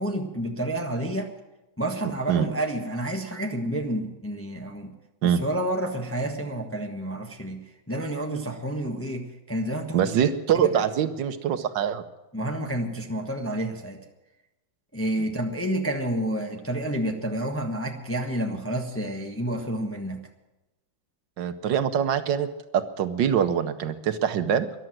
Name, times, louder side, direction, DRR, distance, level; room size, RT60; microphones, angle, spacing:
voice 1, 0.0-1.3 1.8-4.9 5.2-10.2 10.5-10.8 12.3-14.0 14.9-20.2, right 1 dB, 10° left, 3 dB, 0.9 m, -29 dB
voice 2, 9.9-12.0 21.4-22.5 22.7-24.7, right 8 dB, 75° right, 10 dB, 1.4 m, -24 dB
13.5 x 11.5 x 7.7 m, 1.0 s
omnidirectional pair, 2.1 m